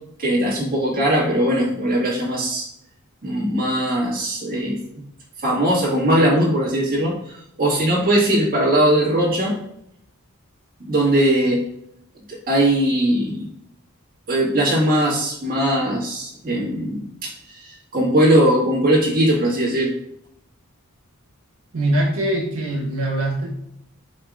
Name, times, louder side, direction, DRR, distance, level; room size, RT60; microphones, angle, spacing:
voice 1, 0.2-2.7 3.2-4.8 5.4-9.6 10.9-11.6 12.3-13.5 14.3-19.9, right 1 dB, 45° right, -5 dB, 1.6 m, -20 dB
voice 2, 21.7-23.5, right 1 dB, 80° right, -2 dB, 1.5 m, -22 dB
4.9 x 3.6 x 2.4 m, 0.73 s
head